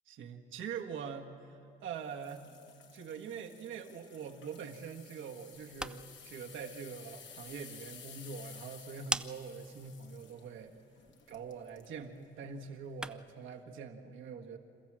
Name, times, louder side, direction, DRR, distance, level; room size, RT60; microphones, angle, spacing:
voice 1, 0.1-1.3 1.8-2.5 2.9-10.7 11.3-14.6, right 6 dB, 80° right, 3 dB, 1.6 m, -44 dB
sound 1, 2.0-11.9 12.4-12.7 13.2-13.3, left 7 dB, 70° left, 1.6 m, -55 dB
sound 2, 5.5-13.4, right 1 dB, 5° right, 0.5 m, -45 dB
27.5 x 14.0 x 7.6 m, 2.8 s
cardioid pair, 90°, 20 cm